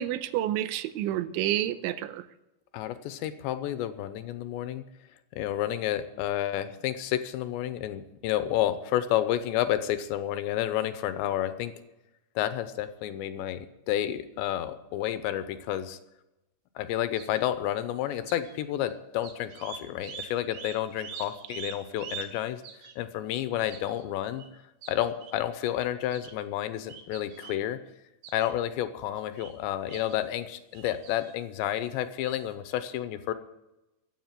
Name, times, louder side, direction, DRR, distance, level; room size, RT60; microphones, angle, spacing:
voice 1, 0.0-2.2, right 12 dB, 85° right, 12 dB, 3.2 m, -29 dB
voice 2, 2.7-4.8 5.3-11.7 12.4-16.0 16.8-22.6 23.0-24.4 24.9-27.8 28.3-33.3, left 12 dB, 80° left, 11 dB, 2.9 m, -30 dB
sound 1, 17.2-17.5 18.1-18.6 18.9-19.0 19.2-22.4 22.6-23.0 23.7-24.0 24.4-24.5 24.8-25.3 26.0-26.3 26.9-27.6 28.2-28.5 29.2-29.5 29.9-30.2 30.7-31.4 32.2-32.4, right 7 dB, 70° right, 3.4 m, -44 dB
15.5 x 8.1 x 9.0 m, 0.95 s
omnidirectional pair, 5.3 m